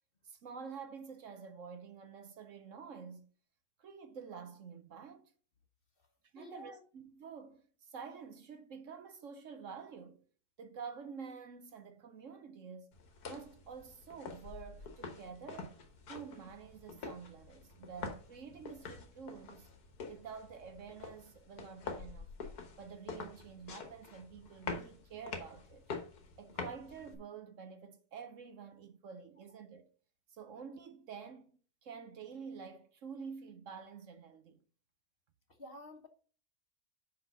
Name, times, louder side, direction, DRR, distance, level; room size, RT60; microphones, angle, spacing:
voice 1, 0.2-3.3 3.8-5.3 6.3-10.2 10.6-12.9 13.2-15.8 16.1-19.7 20.1-22.3 22.8-25.9 26.4-29.9 30.3-31.5 31.8-34.6, right 6 dB, 60° right, 1.1 m, -49 dB
voice 2, 6.4-6.8 35.6-36.1, left 1 dB, 40° left, 1.2 m, -50 dB
sound 1, 12.9-27.1, left 4 dB, 85° left, 1.9 m, -46 dB
5.7 x 5.6 x 6.6 m
omnidirectional pair, 1.6 m